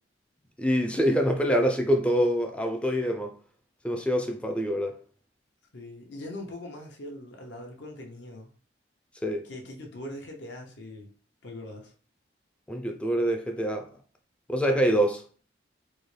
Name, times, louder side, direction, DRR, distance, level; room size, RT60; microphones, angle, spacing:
voice 1, 0.6-3.3 3.8-5.0 9.2-9.4 12.7-13.9 14.5-15.2, equal, 5° left, 0.4 m, -25 dB
voice 2, 5.7-8.5 9.4-11.1 11.4-11.9, left 1 dB, 70° left, 0.8 m, -41 dB
3.7 x 2.1 x 3.2 m
head